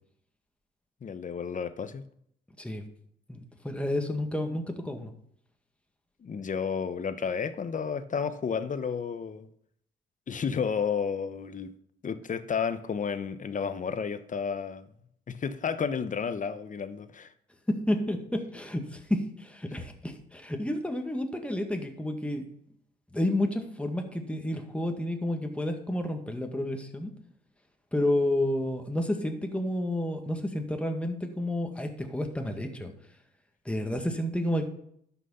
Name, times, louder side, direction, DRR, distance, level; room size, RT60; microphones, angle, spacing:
voice 1, 1.0-2.0 6.2-9.5 10.3-11.7 12.0-14.9 15.3-17.3, left 6 dB, 40° left, 11 dB, 1.0 m, -32 dB
voice 2, 3.6-5.1 17.9-22.4 23.1-27.1 27.9-32.9 33.7-34.7, left 1 dB, 5° left, 4 dB, 1.7 m, -30 dB
11.5 x 6.2 x 5.6 m, 0.69 s
cardioid pair, 90°, 20 cm